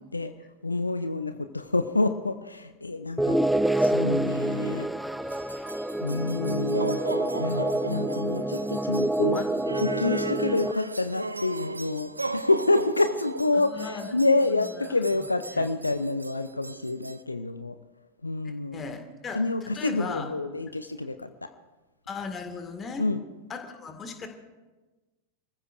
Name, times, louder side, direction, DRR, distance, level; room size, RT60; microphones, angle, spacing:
voice 1, 0.6-3.4 3.8-4.9 6.0-7.0 7.4-9.4 9.8-17.8 18.2-18.8 19.3-21.5 23.0-23.2, left 2 dB, 80° left, 11 dB, 0.6 m, -27 dB
sound 1, 3.2-10.7, right 1 dB, ahead, 0.5 m, -27 dB
sound 2, 5.3-17.2, right 2 dB, 80° right, 0.4 m, -36 dB
voice 2, 13.7-14.1 14.8-14.9 15.5-15.6 18.4-19.4 19.7-20.3 22.1-23.0 23.5-24.3, left 5 dB, 20° left, 6 dB, 2.0 m, -37 dB
26.5 x 14.5 x 2.6 m, 1.2 s
figure-of-eight pair, 90°, 0 cm